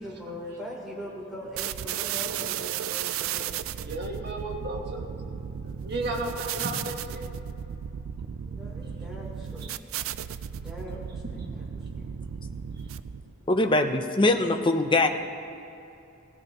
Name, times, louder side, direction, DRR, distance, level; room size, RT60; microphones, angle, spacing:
voice 1, 0.0-3.9 8.5-9.8 10.5-11.6 12.0-12.1, equal, 5° right, -5 dB, 3.5 m, -41 dB
sound 1, 1.6-13.4, right 9 dB, 85° right, 0.4 m, -35 dB
voice 2, 2.3-2.7 3.0-3.4 3.6-8.7 9.6-10.7 11.2-13.5 13.9-14.0, right 2 dB, 55° right, -1 dB, 1.9 m, -38 dB
voice 3, 13.5-15.1, left 2 dB, 25° left, 5 dB, 0.7 m, -22 dB
17.0 x 16.0 x 3.0 m, 2.7 s
head